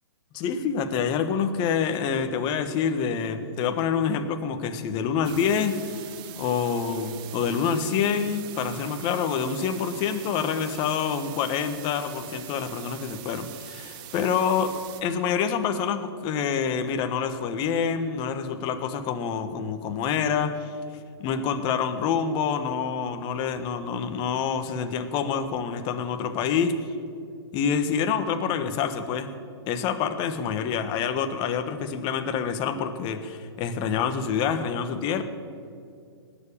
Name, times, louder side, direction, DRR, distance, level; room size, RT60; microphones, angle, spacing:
voice 1, 0.3-6.0 6.4-14.8 15.0-20.7 21.2-26.9 27.5-29.3 29.7-35.2, left 7 dB, 35° left, 8 dB, 1.4 m, -27 dB
sound 1, 5.2-15.0, right 12 dB, 35° right, 1.1 m, -43 dB
19.0 x 7.4 x 8.7 m, 2.3 s
hypercardioid pair, 125°, 14 cm